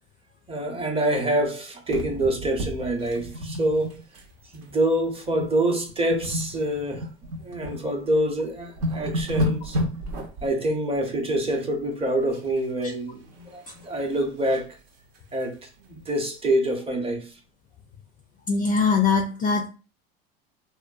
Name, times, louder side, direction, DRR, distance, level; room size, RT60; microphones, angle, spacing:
voice 1, 0.5-4.0 4.5-7.1 7.4-9.8 10.4-14.7 15.3-17.3, right 1 dB, 20° right, 0.6 m, -26 dB
sound 1, 1.9-4.3 4.5-4.8 5.3-5.6 5.9-7.8 8.3-8.4 8.6-10.5 12.3-12.9 13.2-14.7 15.2-15.3 15.5-15.6 16.1-16.2, equal, 70° right, 0.9 m, -31 dB
voice 2, 18.5-19.7, left 5 dB, 30° left, 0.3 m, -21 dB
2.5 x 2.2 x 2.4 m
supercardioid pair, 100°, 31 cm